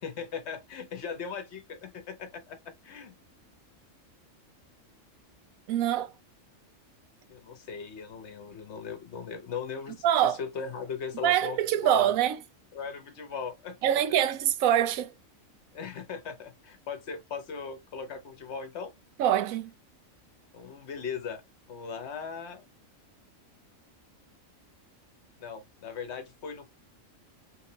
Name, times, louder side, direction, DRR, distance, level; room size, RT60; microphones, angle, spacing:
voice 1, 0.0-3.2 7.3-11.6 11.8-12.1 12.7-13.8 15.7-18.9 20.5-21.4 21.7-22.6 25.4-26.7, left 6 dB, 60° left, 1.0 m, -38 dB
voice 2, 5.7-6.1 10.0-10.4 11.2-12.4 13.8-15.1 19.2-19.7, right 11 dB, 85° right, 1.0 m, -24 dB
3.3 x 3.1 x 2.8 m
omnidirectional pair, 1.4 m